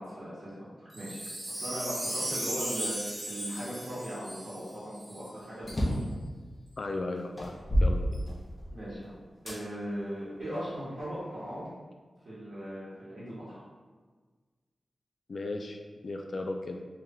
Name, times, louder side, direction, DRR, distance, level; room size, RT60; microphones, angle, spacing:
voice 1, 0.0-6.1 8.7-9.2 9.4-11.7 12.2-13.6, equal, 60° right, -10 dB, 1.5 m, -39 dB
Wind chime, 0.9-5.3 5.8-5.9, right 1 dB, 40° right, 1.1 m, -36 dB
sound 1, 5.6-6.2 6.8-6.9 7.4-8.8 9.5-9.6 10.3-11.4, equal, 30° left, 0.8 m, -29 dB
voice 2, 6.8-7.5 7.8-8.1 15.3-16.8, left 2 dB, 55° left, 3 dB, 0.3 m, -36 dB
4.5 x 3.5 x 2.2 m, 1.4 s
wide cardioid pair, 130°, 0 cm